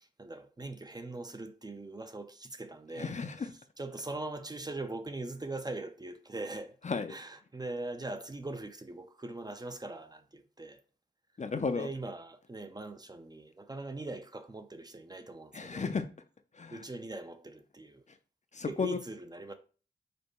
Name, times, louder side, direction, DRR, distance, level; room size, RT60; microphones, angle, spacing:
voice 1, 0.2-3.1 3.8-6.7 7.1-10.8 11.7-15.8 16.7-18.0 18.7-19.5, right 2 dB, 20° right, 0.5 m, -41 dB
voice 2, 2.9-3.5 6.8-7.2 11.4-11.9 15.5-16.1 16.5-16.9 18.1-18.2 18.5-19.0, left 4 dB, 40° left, 0.5 m, -34 dB
5.1 x 2.2 x 4.6 m
wide cardioid pair, 90°, 19 cm